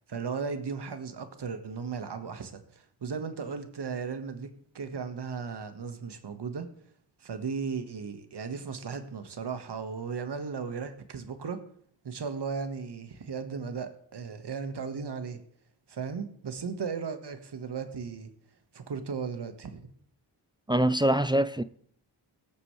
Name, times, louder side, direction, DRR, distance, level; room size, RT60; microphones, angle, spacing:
voice 1, 0.1-6.7 7.2-11.6 12.0-15.4 15.9-18.3 18.7-19.9, right 5 dB, 55° right, 1.7 m, -36 dB
voice 2, 20.7-21.6, right 1 dB, 10° right, 0.5 m, -24 dB
17.5 x 6.8 x 3.3 m
supercardioid pair, 45°, 49 cm